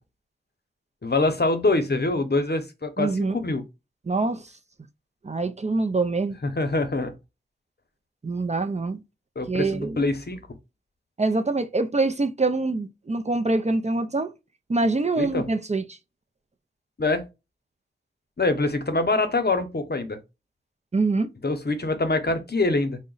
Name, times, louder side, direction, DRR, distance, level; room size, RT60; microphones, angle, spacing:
voice 1, 1.0-3.6 6.6-7.1 9.4-10.4 15.2-15.4 17.0-17.2 18.4-20.2 21.4-23.0, left 2 dB, 55° left, 0.7 m, -24 dB
voice 2, 3.0-3.4 4.1-4.5 5.2-6.4 8.2-9.0 9.5-10.0 11.2-14.3 14.7-16.0 20.9-21.3, right 3 dB, 35° right, 0.4 m, -25 dB
3.7 x 2.1 x 3.8 m
wide cardioid pair, 50°, 20 cm